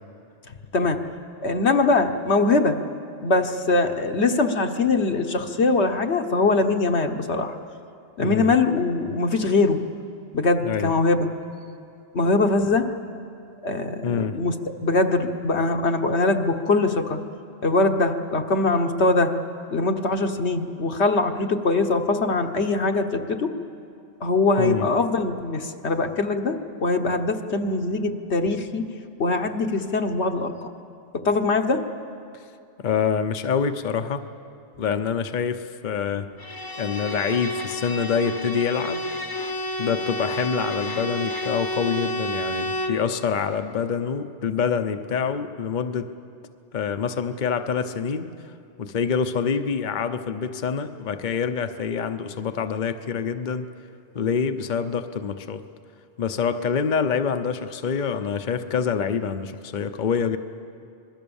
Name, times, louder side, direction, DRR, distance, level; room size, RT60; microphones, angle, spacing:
voice 1, 1.4-2.8 3.2-7.5 8.2-9.8 10.3-11.3 12.1-12.9 13.6-14.5 14.8-17.2 17.6-19.3 19.7-23.5 24.2-28.8 29.2-30.7 31.2-31.8, left 3 dB, 65° left, 5 dB, 1.4 m, -22 dB
voice 2, 8.2-8.5 10.6-10.9 14.0-14.4 24.6-24.9 32.3-32.4 32.8-34.3 34.8-36.3 36.8-39.0 39.8-46.1 46.7-48.5 48.8-53.7 54.1-55.6 56.2-60.4, left 6 dB, 45° left, 9 dB, 0.9 m, -26 dB
Bowed string instrument, 36.4-43.1, left 1 dB, 20° left, 1.0 m, -30 dB
26.5 x 21.0 x 7.1 m, 2.5 s
omnidirectional pair, 1.2 m